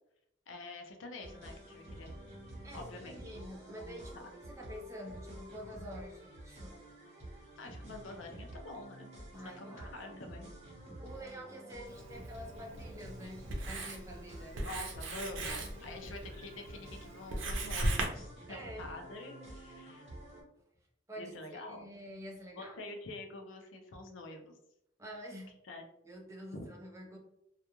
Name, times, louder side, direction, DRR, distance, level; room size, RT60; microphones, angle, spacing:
voice 1, 0.5-2.1 2.7-3.2 7.6-9.1 9.6-10.5 14.6-20.1 21.2-22.0 22.6-24.6 25.7-25.8 26.5-26.6, left 2 dB, 80° left, 4 dB, 0.5 m, -47 dB
sound 1, 1.2-20.4, right 1 dB, 35° right, 0.9 m, -49 dB
voice 2, 2.6-6.8 9.3-10.2 11.0-14.7 18.5-18.9 20.3-20.4 21.1-22.8 25.0-25.5 26.0-27.2, equal, 15° right, 0 dB, 0.5 m, -48 dB
Writing, 11.9-18.1, right 1 dB, 85° right, 0.6 m, -39 dB
2.4 x 2.2 x 2.9 m, 0.80 s
head